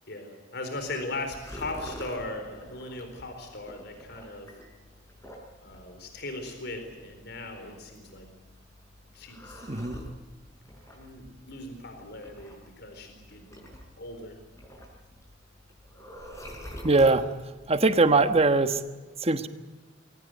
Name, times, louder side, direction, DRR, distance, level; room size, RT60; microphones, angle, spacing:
voice 1, 0.1-4.5 5.6-8.3 9.1-9.6 10.9-13.6 14.0-14.4, left 2 dB, 60° left, 5 dB, 4.3 m, -38 dB
sound 1, 0.8-18.8, equal, 15° left, 5.6 m, -47 dB
voice 2, 9.7-10.0 16.8-17.3 17.7-18.8 19.2-19.5, right 3 dB, 35° right, 10 dB, 1.3 m, -21 dB
22.0 x 18.5 x 9.2 m, 1.2 s
head